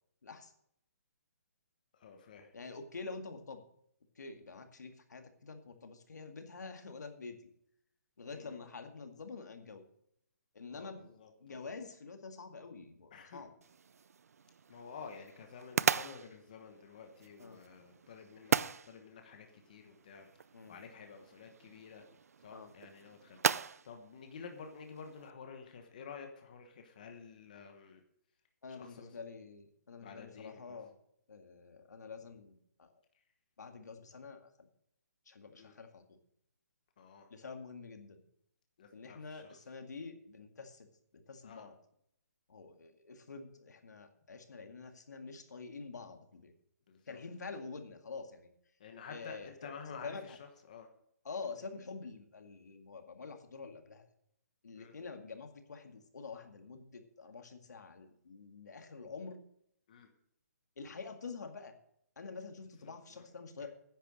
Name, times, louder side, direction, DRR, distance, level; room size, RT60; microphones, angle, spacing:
voice 1, 0.2-0.5 2.5-3.6 4.2-7.5 8.2-9.9 10.5-11.1 11.4-13.5 17.4-17.6 20.5-20.8 22.5-22.7 28.6-30.9 31.3-32.9 33.6-34.7 35.3-36.2 37.3-38.2 38.9-40.9 41.1-41.7 42.5-46.5 47.1-48.5 49.1-50.4 51.2-54.1 54.6-59.4 60.8-61.8 62.2-63.7, left 4 dB, 85° left, 6 dB, 2.0 m, -47 dB
voice 2, 1.9-2.5 8.3-8.6 10.7-11.3 13.1-13.4 14.7-20.3 20.7-22.0 22.4-28.0 28.8-29.1 30.0-30.8 35.6-35.7 37.0-37.3 38.8-39.5 41.4-41.7 46.9-47.2 48.8-50.3 50.7-50.9 54.8-54.9 59.9-60.1 62.8-63.2, left 6 dB, 30° left, 5 dB, 1.1 m, -51 dB
sound 1, 13.6-25.3, right 6 dB, 60° right, 0.4 m, -38 dB
10.0 x 8.9 x 6.4 m, 0.72 s
hypercardioid pair, 180°, 9 cm